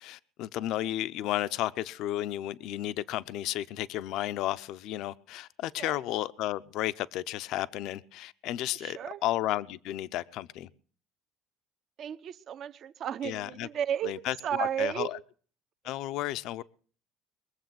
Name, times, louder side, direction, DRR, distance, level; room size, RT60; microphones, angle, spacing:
voice 1, 0.0-10.7 13.2-13.7 14.0-15.2 15.8-16.6, left 14 dB, 65° left, 0.7 m, -33 dB
voice 2, 8.7-9.2 12.0-15.1, right 9 dB, 45° right, 1.1 m, -33 dB
22.5 x 7.8 x 7.7 m
cardioid pair, 145°, 0 cm